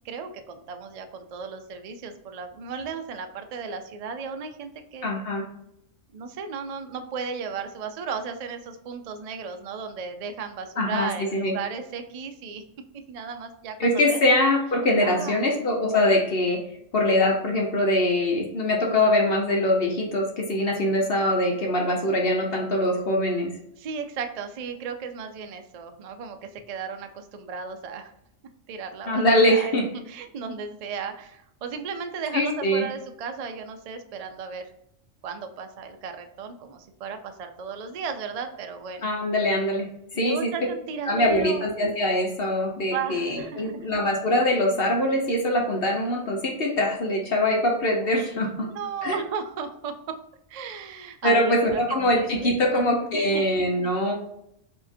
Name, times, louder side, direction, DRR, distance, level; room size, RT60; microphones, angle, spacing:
voice 1, 0.0-5.1 6.1-12.6 13.1-14.2 15.0-15.5 23.8-28.1 28.7-34.7 35.2-39.1 40.1-41.7 42.9-43.9 48.6-50.2 50.5-52.8 53.1-53.9, right 6 dB, 85° right, 6 dB, 0.3 m, -35 dB
voice 2, 5.0-5.4 10.8-11.5 13.8-16.6 16.9-23.5 29.1-29.8 32.3-32.9 39.0-39.9 40.1-40.4 41.1-48.7 49.0-49.2 51.2-54.1, left 1 dB, 55° left, 1 dB, 1.0 m, -23 dB
4.9 x 2.8 x 2.6 m, 0.78 s
omnidirectional pair, 1.3 m